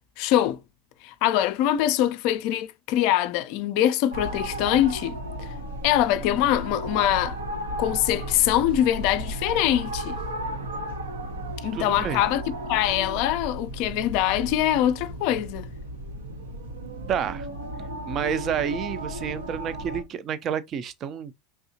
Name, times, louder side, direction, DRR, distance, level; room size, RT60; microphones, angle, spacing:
voice 1, 0.2-0.6 1.0-5.5 5.8-7.4 7.8-10.2 11.6-15.7, left 12 dB, 55° left, 0.4 m, -23 dB
sound 1, 4.1-20.0, right 1 dB, 85° right, 0.8 m, -34 dB
voice 2, 11.7-12.2 17.1-17.5 18.1-21.3, right 8 dB, 40° right, 0.5 m, -29 dB
3.4 x 2.7 x 2.7 m
hypercardioid pair, 90°, 0 cm